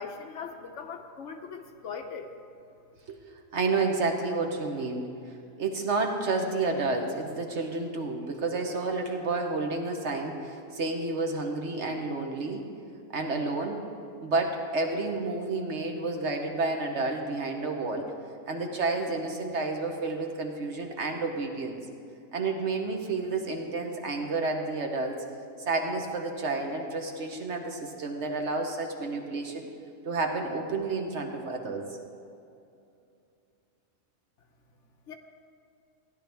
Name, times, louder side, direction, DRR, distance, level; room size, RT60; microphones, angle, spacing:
voice 1, 0.0-2.3 35.1-35.2, left 5 dB, 65° left, 6 dB, 1.0 m, -40 dB
voice 2, 3.5-5.1 5.6-12.6 13.1-13.8 14.2-18.1 18.5-21.8 22.3-25.2 25.6-29.7 30.0-31.8, right 3 dB, 55° right, 3 dB, 1.3 m, -30 dB
16.5 x 10.5 x 3.5 m, 2.6 s
omnidirectional pair, 1.4 m